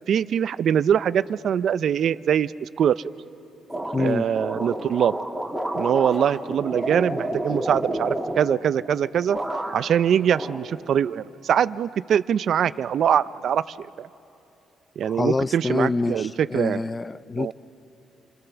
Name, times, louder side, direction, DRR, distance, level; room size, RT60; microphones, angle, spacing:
voice 1, 0.1-3.0 4.0-5.1 5.7-9.4 9.7-14.1 15.0-16.8 17.4-17.5, right 9 dB, 65° right, 16 dB, 0.5 m, -23 dB
sound 1, 3.7-9.0 9.3-10.0 10.3-11.2, right 1 dB, 5° right, 2.6 m, -30 dB
voice 2, 3.9-4.2 15.1-17.5, left 3 dB, 25° left, 16 dB, 0.5 m, -26 dB
28.0 x 23.0 x 7.0 m, 2.8 s
cardioid pair, 90°, 0 cm